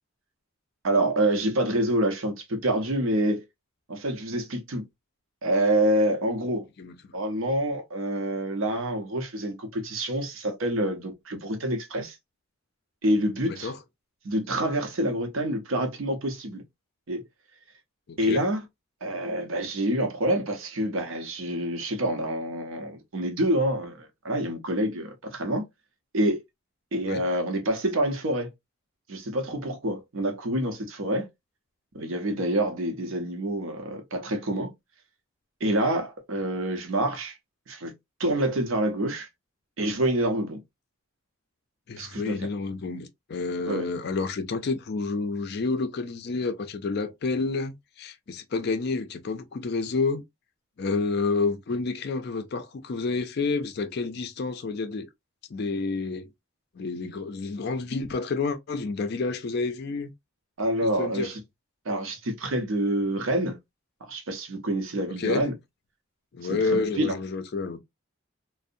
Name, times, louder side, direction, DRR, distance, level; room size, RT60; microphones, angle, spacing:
voice 1, 0.8-3.4 3.9-4.8 5.4-6.7 7.1-12.2 13.0-13.7 14.2-16.6 17.1-17.2 18.2-18.6 19.0-25.6 26.1-26.4 26.9-28.5 29.1-31.3 31.9-34.7 35.6-37.4 37.7-37.9 38.2-39.3 39.8-40.6 42.0-42.5 43.7-43.9 60.6-61.4 61.9-63.6 64.0-65.5 66.4-67.2, right 1 dB, 70° right, 0.7 m, -27 dB
voice 2, 13.4-13.8 18.1-18.4 27.0-27.2 41.9-50.2 50.8-55.1 55.5-56.3 56.8-60.1 60.8-61.3 65.2-65.4 66.3-67.8, left 4 dB, 50° left, 0.4 m, -29 dB
2.5 x 2.0 x 2.5 m
head